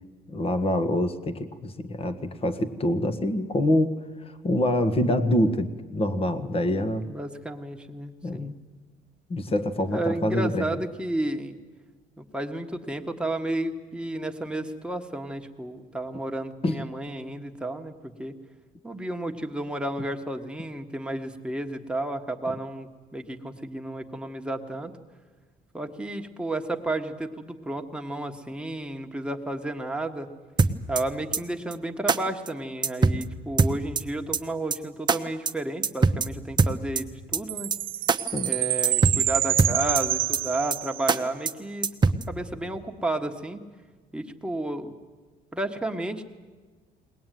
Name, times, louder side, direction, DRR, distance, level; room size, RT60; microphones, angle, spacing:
voice 1, 0.3-3.9 4.2-7.0 8.2-8.5 9.3-10.8 16.6-16.8 38.3-38.5, left 1 dB, 35° left, 10 dB, 1.6 m, -25 dB
voice 2, 7.0-8.5 9.9-11.6 12.2-18.3 18.8-24.9 25.7-30.3 30.9-37.7 38.4-41.9 42.3-43.6 44.1-44.9 45.5-46.2, right 1 dB, 5° right, 3 dB, 1.6 m, -32 dB
sound 1, 30.6-31.0 31.3-31.4 31.7-31.8 32.1-32.2 32.5-32.6 32.8-33.2 33.6-34.0 34.3-34.4 34.7-34.8 35.1-35.2 35.5-35.6 35.8-36.3 36.6-37.0 37.3-37.4 37.7-37.8 38.1-38.2 38.5-38.6 38.8-39.2 39.6-40.0 40.3-40.4 40.7-40.8 41.1-41.2 41.5-41.6 41.8-42.2, right 4 dB, 25° right, 1.0 m, -21 dB
Chime, 37.5-41.2, right 13 dB, 60° right, 0.6 m, -27 dB
21.5 x 19.5 x 9.3 m, 1.4 s
cardioid pair, 110°, 17 cm